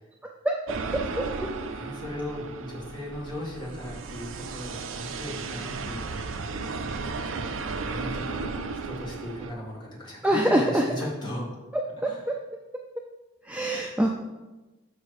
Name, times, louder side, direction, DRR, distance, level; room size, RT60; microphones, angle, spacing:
sound 1, 0.7-9.5, right 4 dB, 65° right, 0.5 m, -34 dB
voice 1, 1.7-6.2 7.7-11.6 12.0-12.2, left 1 dB, 20° left, -5 dB, 1.9 m, -37 dB
voice 2, 10.2-10.9 11.7-12.3 13.4-14.1, right 1 dB, 5° right, 1 dB, 0.3 m, -24 dB
6.3 x 5.8 x 4.8 m, 1.1 s
head